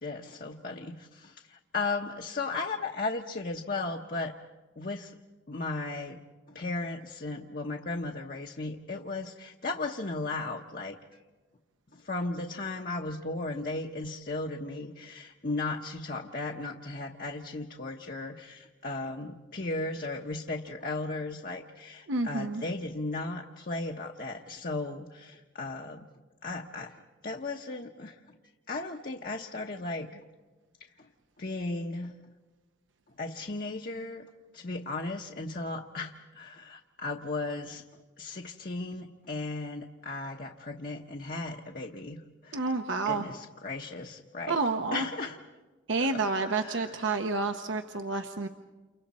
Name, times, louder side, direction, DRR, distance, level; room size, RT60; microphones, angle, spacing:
voice 1, 0.0-4.3 4.8-5.1 5.5-6.2 6.5-11.0 12.0-26.1 26.4-28.2 28.7-30.2 31.0-31.1 31.4-32.1 33.2-34.2 34.5-37.8 38.2-42.7 43.1-44.6 44.9-45.4 46.1-47.0, left 3 dB, 45° left, 1 dB, 1.0 m, -36 dB
voice 2, 22.1-22.6 42.5-43.2 44.5-45.1 45.9-48.5, right 3 dB, 75° right, 6 dB, 0.9 m, -29 dB
30.0 x 29.0 x 4.2 m, 1.2 s
head